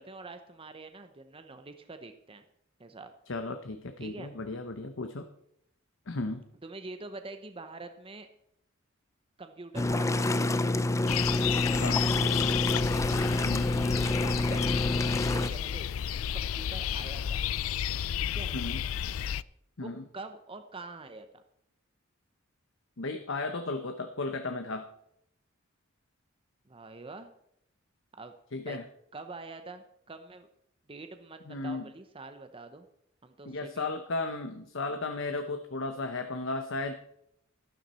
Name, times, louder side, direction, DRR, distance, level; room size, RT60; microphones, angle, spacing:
voice 1, 0.0-2.4 2.8-3.1 4.0-4.3 6.6-8.3 9.4-10.6 12.5-12.8 14.1-15.9 16.3-17.4 18.2-18.5 19.8-21.4 26.7-27.3 28.1-28.3 28.6-28.8 29.1-30.5 30.9-32.9 33.2-33.9, right 3 dB, 25° right, 8 dB, 0.8 m, -45 dB
voice 2, 3.3-5.2 6.1-6.4 11.7-12.5 13.4-13.7 18.5-18.8 19.8-20.0 23.0-24.9 28.5-28.8 31.5-31.9 33.4-36.9, left 3 dB, 65° left, 7 dB, 1.0 m, -35 dB
sound 1, 9.8-15.5, left 2 dB, 15° left, 0.4 m, -27 dB
sound 2, 11.1-19.4, left 10 dB, 90° left, 0.4 m, -32 dB
12.5 x 12.5 x 4.3 m, 0.74 s
head